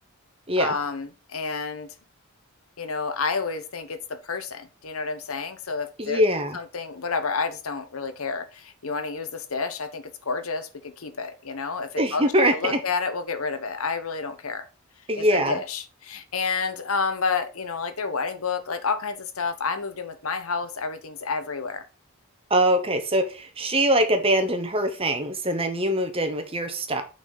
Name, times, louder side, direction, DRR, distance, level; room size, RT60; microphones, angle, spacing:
voice 1, 0.6-1.9 2.8-4.0 4.2-6.2 6.5-14.6 15.2-21.8, left 4 dB, 70° left, 0.9 m, -30 dB
voice 2, 6.0-6.6 12.0-12.8 15.1-15.6 22.5-27.0, right 1 dB, 25° right, 1.0 m, -23 dB
6.1 x 4.2 x 5.4 m
head